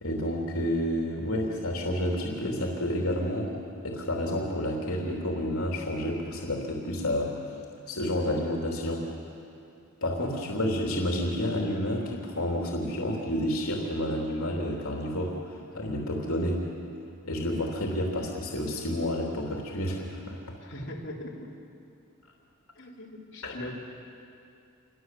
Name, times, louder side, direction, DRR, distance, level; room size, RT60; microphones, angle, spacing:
voice 1, 0.0-3.6 3.8-7.4 7.9-9.0 10.0-16.6 17.2-20.4 23.4-23.6, left 1 dB, 75° left, -1 dB, 3.3 m, -30 dB
voice 2, 20.6-21.5 22.8-23.7, left 1 dB, 50° left, -4 dB, 3.9 m, -40 dB
28.0 x 23.0 x 7.8 m, 2.6 s
head